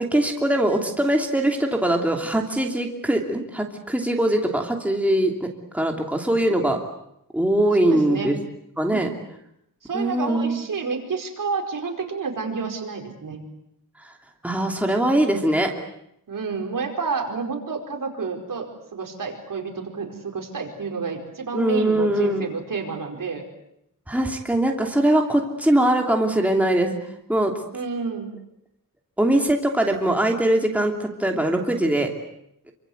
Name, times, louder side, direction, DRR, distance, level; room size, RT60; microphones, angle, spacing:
voice 1, 0.0-5.5 5.7-6.8 7.3-8.4 8.8-9.1 9.9-10.6 14.4-15.7 21.5-22.5 24.1-27.0 27.3-27.5 29.2-32.1, right 1 dB, 5° right, 1 dB, 3.0 m, -21 dB
voice 2, 7.8-8.4 8.9-9.0 9.8-13.4 16.3-23.4 27.7-28.3, right 4 dB, 65° right, 2 dB, 5.0 m, -29 dB
27.5 x 25.5 x 8.1 m, 0.78 s
wide cardioid pair, 135°, 35 cm